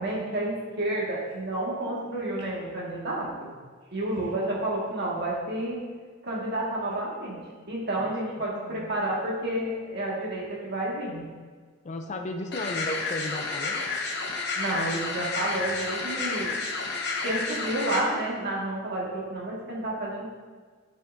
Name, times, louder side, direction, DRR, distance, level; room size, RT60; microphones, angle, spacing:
voice 1, 0.0-3.5 3.9-5.8 6.2-7.4 7.7-11.2 14.6-16.5 17.2-20.3, right 1 dB, 55° right, -4 dB, 1.8 m, -30 dB
voice 2, 8.6-8.9 11.8-13.8, left 1 dB, 35° left, 5 dB, 0.5 m, -34 dB
sound 1, 12.5-18.0, left 3 dB, 55° left, 0.9 m, -31 dB
10.0 x 5.6 x 2.6 m, 1.5 s
head